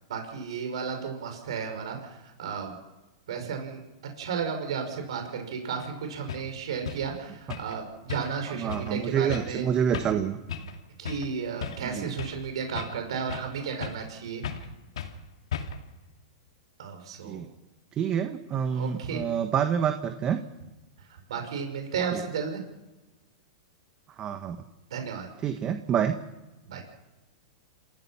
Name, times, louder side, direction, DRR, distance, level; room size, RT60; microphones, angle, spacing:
voice 1, 0.1-2.7 3.3-3.8 4.2-9.7 11.0-14.6 16.8-17.4 18.7-19.2 21.3-22.6 24.9-25.3 26.7-26.8, right 6 dB, 80° right, 4 dB, 5.6 m, -33 dB
sound 1, 5.8-5.9 6.3-6.5 6.9-7.1 7.5-7.8 8.1-8.4 8.7-8.9 9.3-9.6 9.9-10.2 10.5-10.8 11.1-11.3 11.6-12.4 12.8-13.5 13.8-14.1 14.4-14.7 15.0-15.2 15.5-15.9, left 7 dB, 85° left, 2.4 m, -36 dB
voice 2, 8.5-10.4 11.8-12.1 17.2-17.5 18.0-20.4 22.1-22.2 24.2-24.6 25.4-26.2, right 8 dB, 30° right, 7 dB, 1.4 m, -27 dB
28.5 x 16.0 x 5.8 m, 1.0 s
hypercardioid pair, 135°, 3 cm